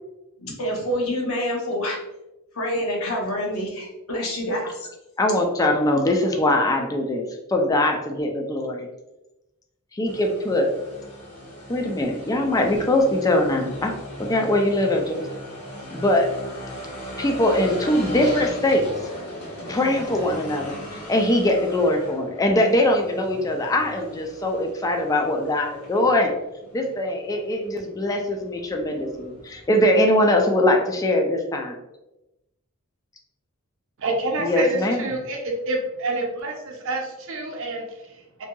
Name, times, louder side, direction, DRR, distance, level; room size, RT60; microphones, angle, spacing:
voice 1, 0.4-2.0 2.5-4.9, equal, 70° left, -1 dB, 0.7 m, -27 dB
voice 2, 5.2-8.9 9.9-10.7 11.7-13.9 14.2-15.3 15.9-16.3 17.2-18.9 19.7-20.7 21.1-26.3 26.7-31.7 34.4-35.0, left 1 dB, 15° left, 2 dB, 0.3 m, -22 dB
sound 1, 10.1-29.9, equal, 90° left, 1.0 m, -38 dB
voice 3, 34.0-38.4, right 2 dB, 65° right, 1 dB, 0.5 m, -28 dB
2.7 x 2.6 x 2.2 m, 0.95 s
head